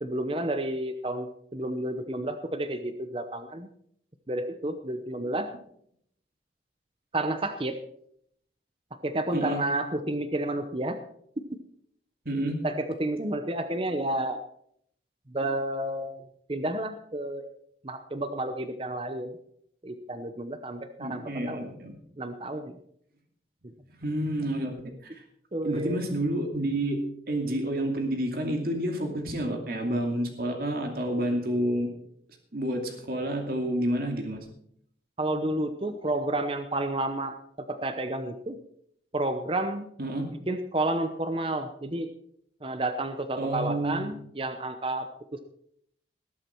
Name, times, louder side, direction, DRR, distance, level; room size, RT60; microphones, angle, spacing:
voice 1, 0.0-3.7 4.3-5.5 7.1-7.8 9.0-11.0 12.3-14.4 15.3-16.1 16.5-17.5 17.8-19.3 19.8-21.7 22.2-22.8 25.5-26.0 35.2-37.4 37.7-38.6 39.1-39.9 40.5-42.1 42.6-45.1 45.3-45.4, right 1 dB, 30° right, 8 dB, 0.8 m, -30 dB
voice 2, 9.3-9.7 12.2-12.6 21.0-21.9 24.0-25.2 25.6-27.0 27.3-31.9 32.5-34.4 40.0-40.3 43.4-44.1, right 1 dB, 55° right, 3 dB, 2.5 m, -29 dB
19.0 x 8.6 x 4.5 m, 0.69 s
head